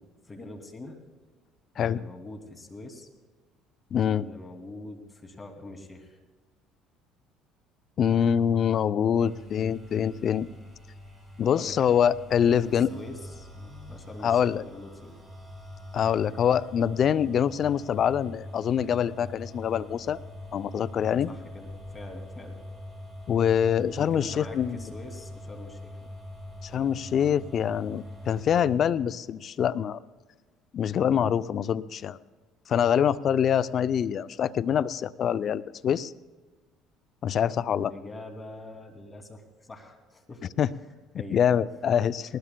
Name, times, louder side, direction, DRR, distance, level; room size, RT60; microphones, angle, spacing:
voice 1, 0.2-1.0 1.7-3.1 4.1-6.2 11.4-12.0 12.4-15.2 21.3-22.6 24.0-26.0 37.7-40.5 41.1-41.4 41.9-42.0, left 2 dB, 25° left, 3 dB, 2.7 m, -44 dB
voice 2, 3.9-4.3 8.0-10.5 11.4-12.9 14.2-14.6 15.9-20.2 20.5-21.3 23.3-24.8 26.6-30.0 30.7-32.2 32.7-36.1 37.2-37.9 40.6-40.7 41.3-42.2, left 8 dB, 50° left, 16 dB, 0.5 m, -25 dB
sound 1, 9.2-28.8, left 1 dB, 10° right, 4.3 m, -44 dB
19.5 x 19.5 x 2.3 m, 1.3 s
supercardioid pair, 80°, 0 cm